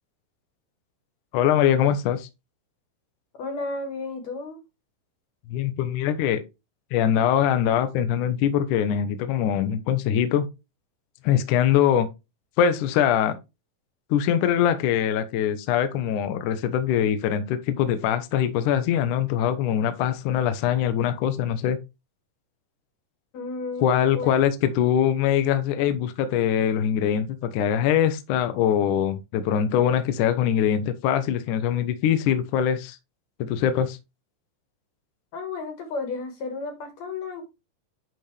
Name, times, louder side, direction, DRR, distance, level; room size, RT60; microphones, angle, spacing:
voice 1, 1.3-2.3 5.5-6.4 6.9-10.5 11.2-12.1 12.6-13.4 14.1-21.8 23.8-33.0 33.4-34.0, left 9 dB, 75° left, 2.2 m, -23 dB
voice 2, 3.4-4.6 23.3-24.3 35.3-37.5, left 3 dB, 60° left, 2.7 m, -33 dB
10.5 x 4.2 x 3.3 m
omnidirectional pair, 3.9 m